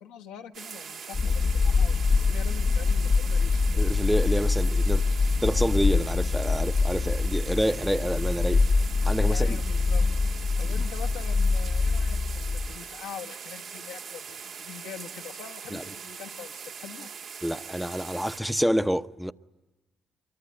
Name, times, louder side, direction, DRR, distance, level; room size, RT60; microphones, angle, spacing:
voice 1, 0.0-3.6 9.3-10.1 10.6-17.1, left 8 dB, 80° left, 1.4 m, -43 dB
sound 1, 0.5-18.4, right 6 dB, 65° right, 2.2 m, -41 dB
sound 2, 1.1-12.8, left 4 dB, 45° left, 1.0 m, -24 dB
voice 2, 3.7-5.0 5.4-8.6 9.0-9.6 15.7-15.8 17.4-19.3, equal, 5° right, 0.9 m, -28 dB
25.5 x 23.5 x 9.2 m
hypercardioid pair, 45°, 0 cm